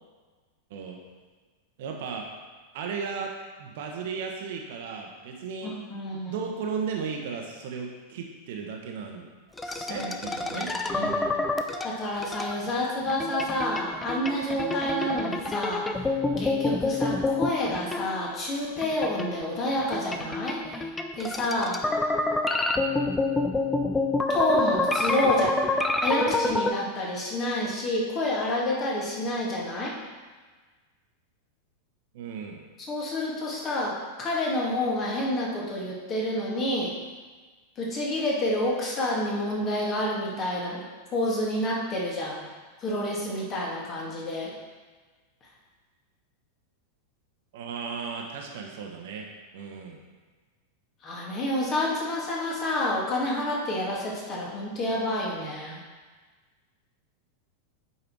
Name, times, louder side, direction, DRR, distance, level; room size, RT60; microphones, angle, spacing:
voice 1, 1.8-2.3 2.7-3.3 3.6-5.7 6.1-9.3 9.7-11.5 25.2-25.5 32.1-32.6 47.5-49.3 49.5-50.0, right 5 dB, 50° right, 1 dB, 1.2 m, -35 dB
voice 2, 5.6-6.3 9.6-10.1 10.5-11.1 11.8-15.9 16.4-20.8 21.2-21.8 24.3-25.5 26.0-30.0 32.9-36.9 37.8-40.8 41.1-42.4 42.8-44.5 51.0-55.8, left 1 dB, 30° left, -3 dB, 2.2 m, -29 dB
sound 1, 9.6-12.6 13.1-18.4 18.8-26.7, left 2 dB, 10° left, 0.6 m, -28 dB
8.5 x 5.6 x 4.7 m, 1.4 s
figure-of-eight pair, 90°, 0 cm